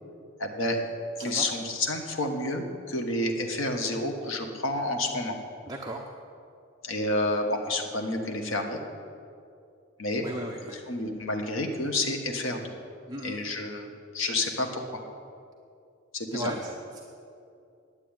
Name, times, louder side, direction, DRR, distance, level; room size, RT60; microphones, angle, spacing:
voice 1, 0.4-0.8 1.2-5.4 6.8-8.8 10.0-10.3 10.9-12.7 13.2-15.0 16.1-16.5, left 2 dB, 70° left, 3 dB, 1.4 m, -29 dB
voice 2, 5.7-6.0 10.2-10.8 13.1-13.4 16.3-16.7, right 1 dB, 20° right, 0 dB, 0.8 m, -36 dB
10.0 x 9.0 x 8.9 m, 2.5 s
head